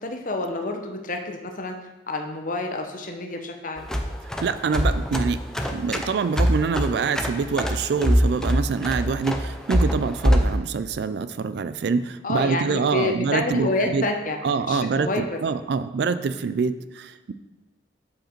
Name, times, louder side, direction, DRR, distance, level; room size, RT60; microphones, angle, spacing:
voice 1, 0.0-1.8 2.1-3.9 12.2-14.4 14.7-15.3, left 2 dB, 45° left, 4 dB, 0.8 m, -28 dB
sound 1, 3.8-10.6, equal, 5° left, 0.5 m, -23 dB
voice 2, 4.4-5.4 5.7-14.1 14.4-17.3, right 5 dB, 65° right, 13 dB, 0.3 m, -25 dB
7.8 x 4.9 x 4.4 m, 1.1 s
head